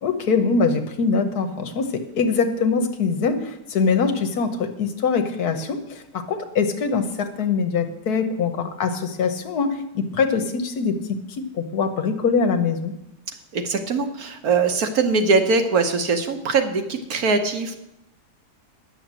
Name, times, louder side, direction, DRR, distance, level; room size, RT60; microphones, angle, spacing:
voice 1, 0.0-11.0 11.3-12.9, left 5 dB, 70° left, 8 dB, 1.5 m, -23 dB
voice 2, 13.5-17.8, right 4 dB, 65° right, 6 dB, 1.5 m, -21 dB
10.5 x 6.9 x 7.4 m, 0.84 s
omnidirectional pair, 1.8 m